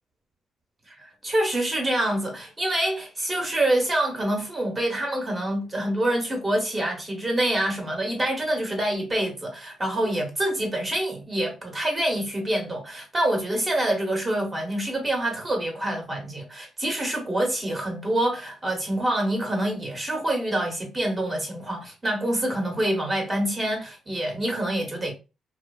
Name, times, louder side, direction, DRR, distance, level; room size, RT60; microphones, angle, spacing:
voice 1, 0.9-25.1, right 1 dB, 25° right, 1.0 m, -26 dB
2.7 x 2.2 x 2.3 m
cardioid pair, 90°, 0 cm